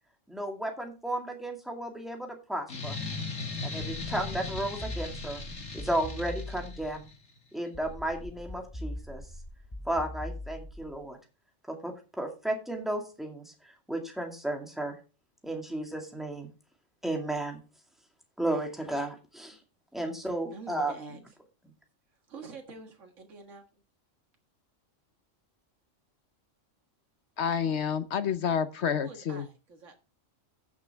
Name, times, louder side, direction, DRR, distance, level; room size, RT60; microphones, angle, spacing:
voice 1, 0.3-3.0 3.6-5.4 5.7-7.1 7.5-9.2 9.9-11.2 11.7-13.5 13.9-15.0 15.4-16.5 17.0-17.6 18.4-19.6 19.9-20.9, right 1 dB, ahead, 2 dB, 2.1 m, -33 dB
sound 1, 2.7-7.1, left 3 dB, 80° left, 2.4 m, -38 dB
sound 2, 3.8-7.1 7.7-11.1, left 1 dB, 15° left, 1.1 m, -42 dB
voice 2, 20.5-21.2 22.3-23.8 29.0-30.0, right 4 dB, 75° right, 3 dB, 2.0 m, -46 dB
voice 3, 27.4-29.5, left 7 dB, 65° left, 12 dB, 1.0 m, -29 dB
14.5 x 6.4 x 3.5 m, 0.33 s
omnidirectional pair, 1.3 m